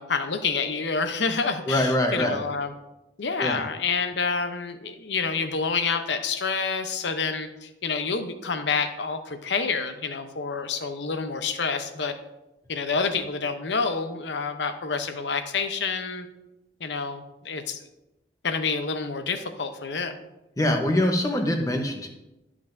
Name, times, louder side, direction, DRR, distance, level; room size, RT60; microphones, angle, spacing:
voice 1, 0.0-2.7 3.2-12.1 12.7-16.3 16.8-17.8 18.4-20.2, left 5 dB, 75° left, 8 dB, 0.8 m, -28 dB
voice 2, 1.7-2.4 3.4-3.6 20.6-22.1, left 1 dB, 20° left, 3 dB, 0.9 m, -24 dB
12.5 x 6.0 x 2.6 m, 0.95 s
head